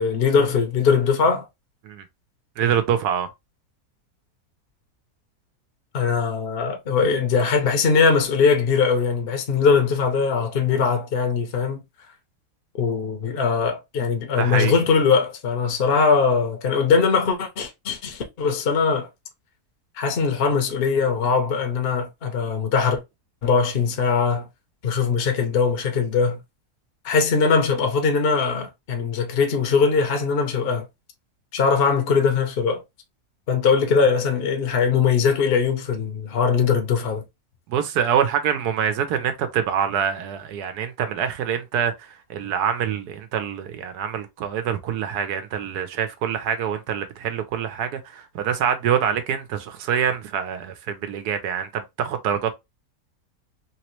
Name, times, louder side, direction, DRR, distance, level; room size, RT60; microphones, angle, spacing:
voice 1, 0.0-1.5 5.9-11.8 12.8-19.1 20.0-23.0 23.4-24.5 24.8-26.4 27.0-30.8 31.5-32.8 33.5-37.2, left 5 dB, 50° left, 0.8 m, -21 dB
voice 2, 2.6-3.3 14.4-14.7 37.7-52.5, right 8 dB, 85° right, 1.2 m, -25 dB
3.3 x 3.0 x 3.0 m
omnidirectional pair, 1.6 m